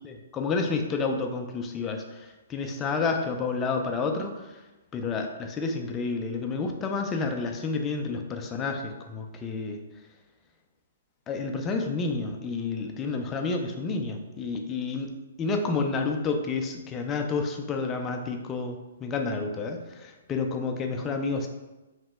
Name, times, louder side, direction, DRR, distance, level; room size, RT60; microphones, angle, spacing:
voice 1, 0.0-2.2 2.5-4.3 4.9-9.8 11.3-15.1 15.4-21.5, left 4 dB, 20° left, 4 dB, 0.4 m, -30 dB
2.9 x 2.1 x 3.4 m, 1.1 s
hypercardioid pair, 130°, 0 cm